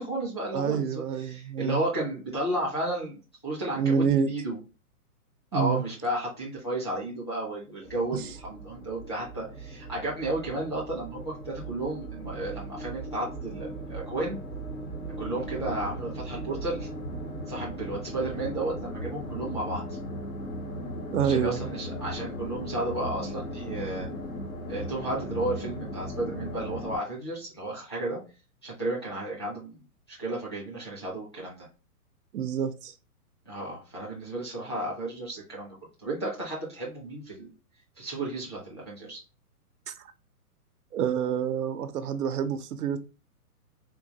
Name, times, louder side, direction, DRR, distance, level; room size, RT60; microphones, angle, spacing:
voice 1, 0.0-4.6 5.5-14.4 15.2-16.9 17.5-19.8 21.2-24.1 24.7-28.2 28.6-29.8 30.1-31.7 33.5-35.8 36.0-37.5 38.0-39.2, right 1 dB, 20° left, 0.5 m, -33 dB
voice 2, 0.5-1.8 3.7-4.3 5.5-5.8 8.1-8.2 21.1-21.7 32.3-32.9 39.9-40.1 40.9-43.0, right 7 dB, 80° right, 0.7 m, -27 dB
sound 1, 7.8-27.0, equal, 65° left, 1.2 m, -37 dB
3.7 x 2.3 x 2.7 m
hypercardioid pair, 180°, 45 cm